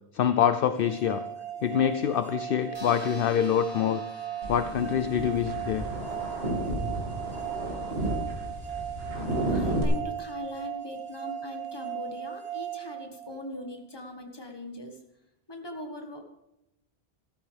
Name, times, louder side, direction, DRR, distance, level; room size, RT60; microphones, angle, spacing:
voice 1, 0.1-1.2 1.6-4.0 4.5-5.9, left 9 dB, 65° left, 10 dB, 0.7 m, -25 dB
sound 1, 0.8-13.7, right 10 dB, 40° right, 1.0 m, -38 dB
sound 2, 2.7-7.6, left 1 dB, 25° right, 2.7 m, -50 dB
sound 3, 4.4-9.8, right 1 dB, 70° right, 2.5 m, -32 dB
voice 2, 9.5-15.0 15.5-16.2, left 1 dB, 25° left, 3 dB, 1.6 m, -40 dB
14.0 x 13.0 x 3.4 m, 0.89 s
omnidirectional pair, 1.1 m